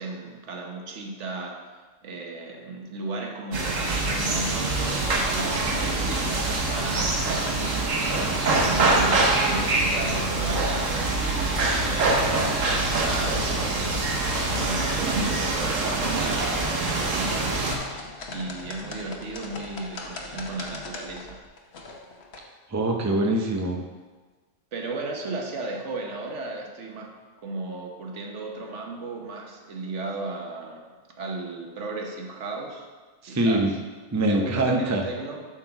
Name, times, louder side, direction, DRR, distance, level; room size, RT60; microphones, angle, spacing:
voice 1, 0.0-1.6 2.0-7.2 7.5-11.0 11.4-13.9 14.5-17.6 18.3-21.4 24.7-30.9 31.2-32.9 33.3-33.8 34.2-35.5, right 2 dB, 70° right, 1 dB, 1.3 m, -35 dB
sound 1, 3.5-17.8, right 2 dB, 90° right, 1.5 m, -24 dB
sound 2, 16.8-22.4, left 3 dB, 60° left, 1.2 m, -40 dB
voice 2, 22.7-23.8 33.2-33.7 34.1-35.0, right 1 dB, 20° right, 2 dB, 0.5 m, -23 dB
7.8 x 4.5 x 5.8 m, 1.4 s
omnidirectional pair, 1.3 m